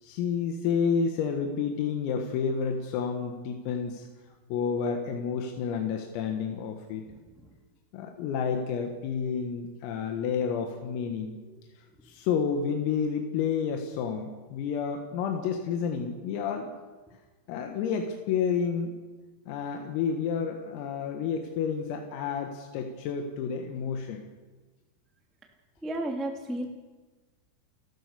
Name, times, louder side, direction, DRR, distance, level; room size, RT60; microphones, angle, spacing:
voice 1, 0.0-4.1 4.5-7.0 7.9-11.4 12.0-16.7 17.5-18.9 19.5-24.2, left 6 dB, 90° left, 4 dB, 4.3 m, -30 dB
voice 2, 25.8-26.7, right 1 dB, ahead, 2 dB, 0.7 m, -32 dB
29.5 x 14.5 x 6.9 m, 1.3 s
omnidirectional pair, 5.9 m